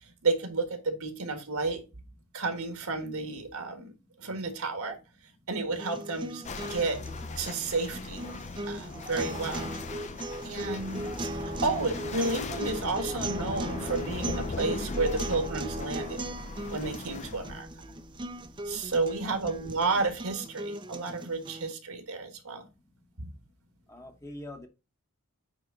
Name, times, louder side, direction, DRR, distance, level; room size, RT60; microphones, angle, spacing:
voice 1, 0.2-1.8 2.3-3.9 4.2-5.0 5.5-7.0 7.4-8.3 8.6-9.7 10.4-16.2 16.7-17.7 18.6-22.6 23.2-23.3, right 3 dB, 70° right, 1.6 m, -31 dB
sound 1, 5.7-21.7, right 1 dB, 20° right, 0.5 m, -38 dB
sound 2, 6.4-17.6, left 3 dB, 30° left, 0.5 m, -39 dB
sound 3, 10.5-20.3, equal, 80° left, 3.1 m, -48 dB
voice 2, 23.9-24.7, left 1 dB, 15° left, 1.0 m, -43 dB
9.0 x 3.6 x 3.8 m
head